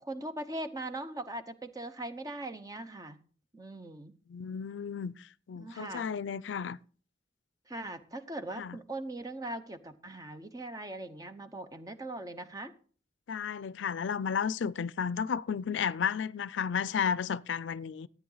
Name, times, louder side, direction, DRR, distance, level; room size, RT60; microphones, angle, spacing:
voice 1, 0.0-3.2 3.5-4.1 5.5-6.1 7.7-12.7, right 1 dB, 20° right, 0.8 m, -40 dB
voice 2, 4.3-6.8 8.6-8.8 13.3-18.1, left 7 dB, 75° left, 0.4 m, -33 dB
13.5 x 9.2 x 3.9 m
head